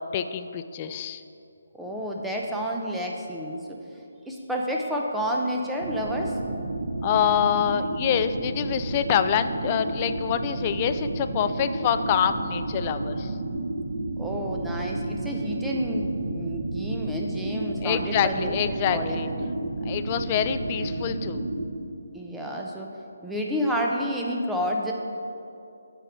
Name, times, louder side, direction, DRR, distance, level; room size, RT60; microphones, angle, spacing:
voice 1, 0.1-1.2 7.0-13.3 17.8-19.3 19.8-21.4, left 9 dB, 30° left, 10 dB, 0.3 m, -26 dB
voice 2, 1.8-3.8 4.3-6.4 14.2-19.2 22.1-22.9 23.2-24.9, equal, 5° right, -1 dB, 0.7 m, -30 dB
sound 1, 5.8-21.7, right 2 dB, 60° right, 1.1 m, -31 dB
9.0 x 4.6 x 6.1 m, 2.6 s
figure-of-eight pair, 155°, 0 cm